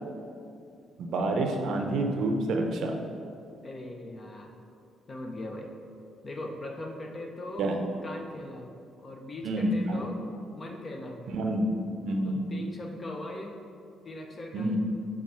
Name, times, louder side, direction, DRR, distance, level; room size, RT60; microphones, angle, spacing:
voice 1, 1.0-3.0 7.6-7.8 9.4-10.0 11.3-11.7 12.0-12.4 14.5-14.8, right 1 dB, 75° right, 3 dB, 0.7 m, -28 dB
voice 2, 3.6-4.5 5.1-5.7 6.2-7.7 8.0-8.7 9.0-10.2 10.5-11.2 12.2-13.5 14.0-14.7, left 1 dB, 35° left, 1 dB, 0.8 m, -40 dB
7.3 x 2.6 x 5.6 m, 2.5 s
cardioid pair, 90°, 0 cm